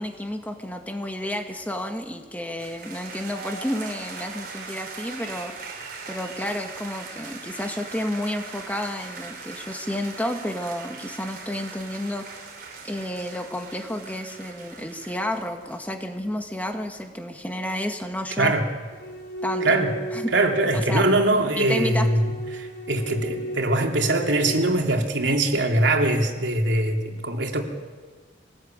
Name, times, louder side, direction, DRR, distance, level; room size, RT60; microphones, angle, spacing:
voice 1, 0.0-5.5 6.1-12.5 12.8-18.6 19.4-19.8 20.1-20.3 20.7-21.0 21.6-22.1, left 1 dB, 10° left, 4 dB, 1.9 m, -31 dB
sound 1, 2.6-15.8, right 4 dB, 55° right, 4.8 m, -40 dB
sound 2, 18.9-24.7, right 1 dB, 70° left, 3.6 m, -34 dB
voice 2, 19.6-19.9 20.3-27.6, right 2 dB, 85° right, 2 dB, 3.1 m, -22 dB
23.0 x 19.0 x 9.0 m, 1.5 s
head